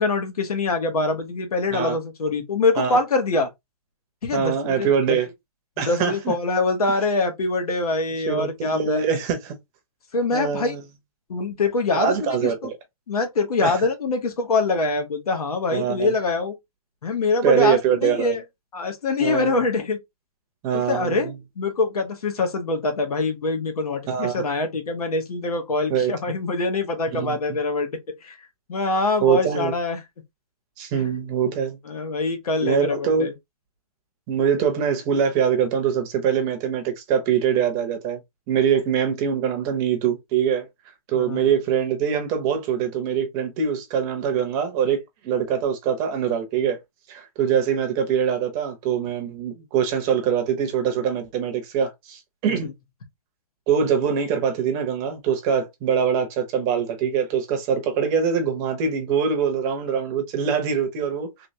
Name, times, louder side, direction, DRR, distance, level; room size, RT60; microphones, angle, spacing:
voice 1, 0.0-3.5 4.2-5.2 5.8-9.1 10.1-10.7 11.3-12.5 13.1-16.6 17.0-18.4 18.7-20.0 20.7-27.9 28.2-28.4 28.7-30.0 30.9-31.1 31.9-33.3 41.2-41.4, left 3 dB, 90° left, 1.4 m, -24 dB
voice 2, 4.3-5.3 5.8-6.3 8.3-9.6 10.3-10.8 11.9-12.7 13.6-13.8 15.7-16.1 17.4-18.4 19.2-19.5 20.6-21.3 24.1-24.4 25.9-26.1 27.1-27.4 29.2-29.7 30.8-31.8 32.6-33.3 34.3-38.2 38.5-40.7 41.1-46.8 47.1-52.7 53.7-61.5, right 7 dB, 20° right, 0.6 m, -23 dB
3.2 x 3.1 x 2.6 m
hypercardioid pair, 165°, 19 cm